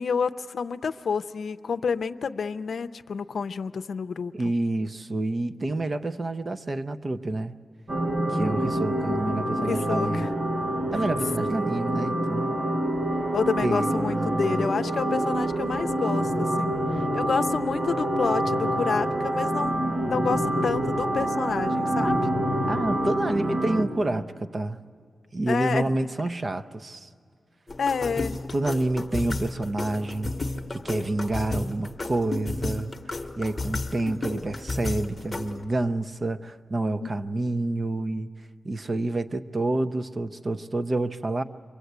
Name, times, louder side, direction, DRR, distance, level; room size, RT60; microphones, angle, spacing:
voice 1, 0.0-4.3 9.6-10.3 13.3-22.3 25.5-25.8 27.8-28.4 37.0-37.1, left 5 dB, 65° left, 10 dB, 0.6 m, -29 dB
voice 2, 4.3-7.6 8.3-10.3 10.9-12.6 13.6-14.7 22.7-24.8 25.3-27.1 28.5-30.3 30.7-38.3 38.6-41.4, right 2 dB, 30° right, 10 dB, 0.6 m, -28 dB
sound 1, 7.9-23.8, right 1 dB, 55° right, 2.2 m, -26 dB
sound 2, 27.7-35.6, left 2 dB, 25° left, 1.0 m, -33 dB
28.5 x 24.0 x 8.1 m, 2.1 s
wide cardioid pair, 145°, 0 cm